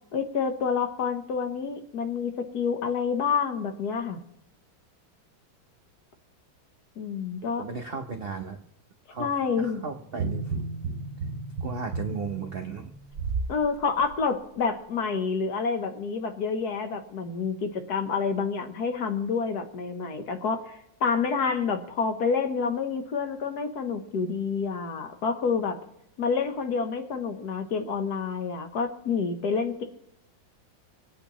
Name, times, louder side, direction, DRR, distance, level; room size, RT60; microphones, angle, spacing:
voice 1, 0.1-4.2 7.0-7.6 9.2-9.8 13.5-20.7 21.0-25.8 26.2-29.8, left 5 dB, 60° left, 6 dB, 1.3 m, -28 dB
voice 2, 7.6-8.6 9.1-9.3 9.6-10.6 11.6-12.9, right 5 dB, 80° right, 4 dB, 0.5 m, -35 dB
sound 1, 10.1-13.6 14.0-14.2, right 3 dB, 60° right, 1.4 m, -33 dB
25.0 x 8.6 x 3.0 m, 0.80 s
omnidirectional pair, 2.2 m